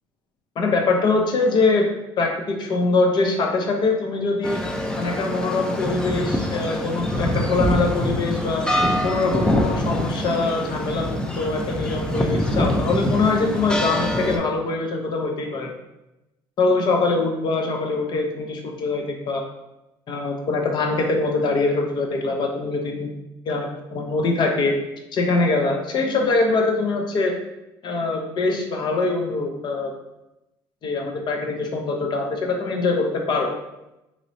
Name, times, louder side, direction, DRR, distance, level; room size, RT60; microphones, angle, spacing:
voice 1, 0.6-1.9 2.2-4.6 5.0-8.7 9.0-15.7 16.6-19.4 20.1-23.1 23.4-24.8 25.1-27.3 27.8-29.9 30.8-33.5, left 3 dB, 50° left, 2 dB, 0.6 m, -23 dB
sound 1, 4.4-14.4, left 1 dB, 10° left, 0.4 m, -24 dB
3.0 x 2.9 x 2.7 m, 0.93 s
supercardioid pair, 95°, 10 cm